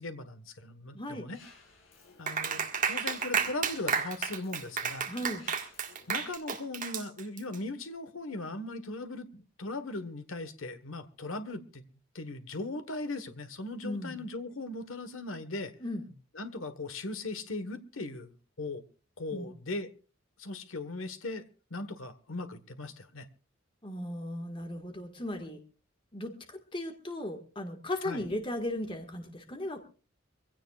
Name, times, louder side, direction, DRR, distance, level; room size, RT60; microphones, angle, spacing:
voice 1, 0.0-1.4 2.2-2.6 2.9-5.1 6.1-11.8 12.1-15.7 16.3-18.8 19.2-19.9 20.4-21.4 21.7-23.3 28.0-28.3, left 2 dB, 85° left, 10 dB, 1.4 m, -38 dB
voice 2, 0.9-1.3 5.1-5.4 13.8-14.2 15.8-16.0 19.3-19.5 23.8-25.6 26.1-29.8, left 1 dB, 25° left, 5 dB, 1.8 m, -36 dB
Mechanisms, 1.3-6.3, left 4 dB, 70° left, 6.0 m, -57 dB
Clapping, 2.3-7.6, right 6 dB, 40° right, 1.8 m, -32 dB
24.0 x 16.5 x 2.4 m, 0.35 s
head